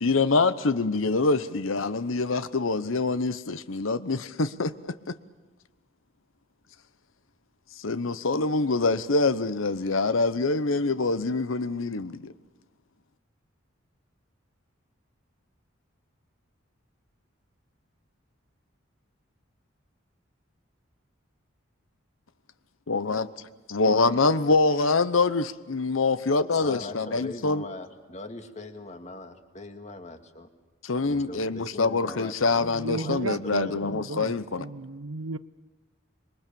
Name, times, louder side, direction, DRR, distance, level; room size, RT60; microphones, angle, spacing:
voice 1, 0.0-5.2 7.8-12.3 22.9-23.3 23.7-27.6 30.8-34.7, left 3 dB, 80° left, 0.9 m, -25 dB
voice 2, 26.6-30.5 31.0-32.7 32.9-34.0, left 2 dB, 35° left, 2.0 m, -41 dB
voice 3, 32.6-35.4, right 3 dB, 90° right, 0.8 m, -35 dB
26.5 x 23.0 x 7.0 m
head